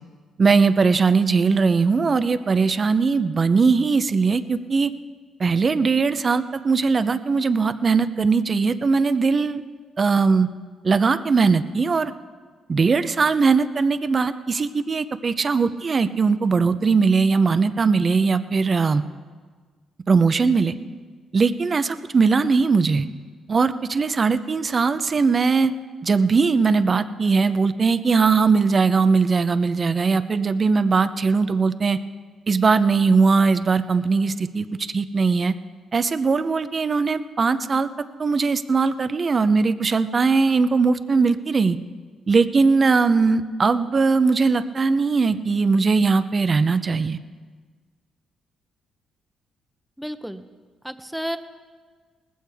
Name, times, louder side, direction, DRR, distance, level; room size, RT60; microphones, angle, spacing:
voice 1, 0.4-4.9 5.4-9.6 10.0-10.5 10.8-12.1 12.7-19.0 20.1-20.7 21.3-23.1 23.5-25.7 26.0-32.0 32.5-34.7 34.9-35.5 35.9-37.9 38.2-41.8 42.3-47.2, right 4 dB, 35° right, 12 dB, 0.7 m, -20 dB
voice 2, 50.0-50.4 50.8-51.4, equal, ahead, 10 dB, 0.8 m, -31 dB
19.5 x 15.0 x 3.5 m, 1.5 s
cardioid pair, 90°, 0 cm